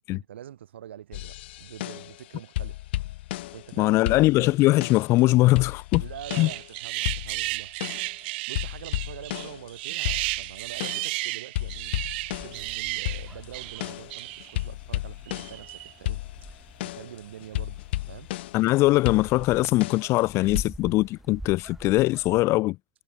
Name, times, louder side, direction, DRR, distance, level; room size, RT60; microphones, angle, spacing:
voice 1, 0.0-2.8 3.5-4.6 6.0-7.7 8.5-12.0 12.4-16.2 16.5-17.8 18.1-18.3, right 10 dB, 80° right, 3.5 m, -44 dB
sound 1, 1.1-2.2 2.6-3.8 4.1-5.2 5.6-6.8 7.1-8.2 8.6-11.2 11.6-15.7 16.1-18.7 19.1-20.6, left 16 dB, 70° left, 3.1 m, -33 dB
voice 2, 3.8-6.0 6.4-6.5 18.5-22.8, left 19 dB, 50° left, 1.1 m, -21 dB
sound 2, 6.2-14.6 15.3-15.9, right 23 dB, 65° right, 2.7 m, -33 dB
sound 3, 12.3-22.4, right 1 dB, 5° right, 4.9 m, -46 dB
hypercardioid pair, 95°, 6 cm